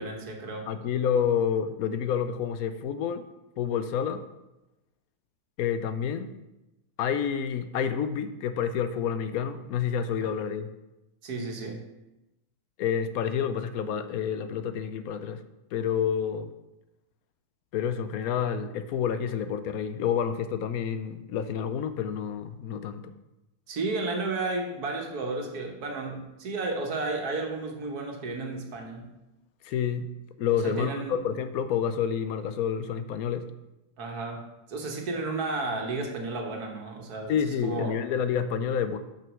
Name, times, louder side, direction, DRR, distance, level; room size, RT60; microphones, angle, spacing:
voice 1, 0.0-0.7 11.2-11.8 23.7-29.1 30.6-31.2 34.0-38.0, right 3 dB, 85° right, 2 dB, 1.7 m, -33 dB
voice 2, 0.7-3.3 3.6-4.2 5.6-6.3 7.0-10.7 12.8-15.4 15.7-16.5 17.7-23.1 29.6-30.1 30.4-33.5 37.3-39.0, left 8 dB, 75° left, 10 dB, 1.0 m, -29 dB
6.1 x 5.8 x 6.1 m, 0.97 s
omnidirectional pair, 1.6 m